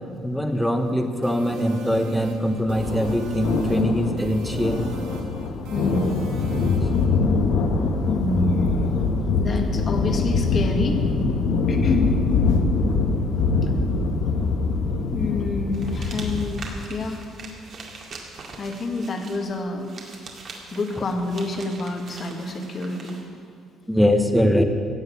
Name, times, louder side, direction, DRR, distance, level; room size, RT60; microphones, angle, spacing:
voice 1, 0.2-4.9 23.9-24.6, equal, ahead, 6 dB, 1.1 m, -22 dB
sound 1, 1.2-7.0, right 2 dB, 85° right, 1.7 m, -40 dB
sound 2, 2.6-16.5, left 4 dB, 85° left, 1.3 m, -23 dB
voice 2, 5.7-6.2 7.1-7.4 8.0-8.9 9.3-11.0 11.7-12.1 13.6-13.7 15.1-17.3 18.6-19.9 20.7-23.2, left 2 dB, 40° left, 4 dB, 1.7 m, -27 dB
sound 3, 15.7-23.2, right 4 dB, 50° right, 2.2 m, -42 dB
16.0 x 6.5 x 8.6 m, 2.3 s
cardioid pair, 110°, 0 cm